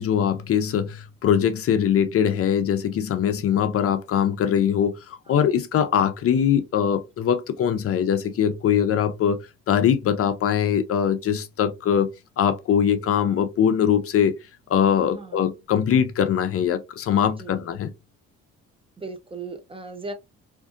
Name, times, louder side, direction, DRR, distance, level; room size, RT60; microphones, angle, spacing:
voice 1, 0.0-9.4 9.7-12.1 12.4-14.3 14.7-17.9, left 8 dB, 50° left, 0.4 m, -22 dB
voice 2, 15.1-15.5 17.4-17.6 19.0-20.1, right 3 dB, 20° right, 0.4 m, -37 dB
2.5 x 2.5 x 2.4 m
cardioid pair, 90°, 30 cm